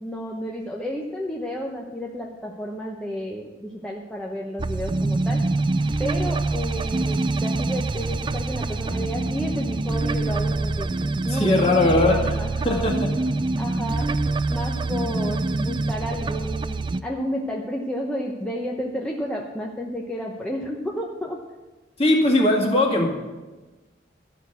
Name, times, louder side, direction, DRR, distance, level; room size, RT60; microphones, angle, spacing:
voice 1, 0.0-5.4 6.0-10.9 11.2-13.0 13.6-14.1 14.5-21.4, equal, 5° left, -2 dB, 0.9 m, -31 dB
sound 1, 4.6-17.0, right 2 dB, 25° right, 0.3 m, -25 dB
voice 2, 11.3-12.2 12.7-13.1 22.0-23.1, left 2 dB, 35° left, -1 dB, 2.1 m, -19 dB
12.5 x 6.0 x 8.2 m, 1.2 s
head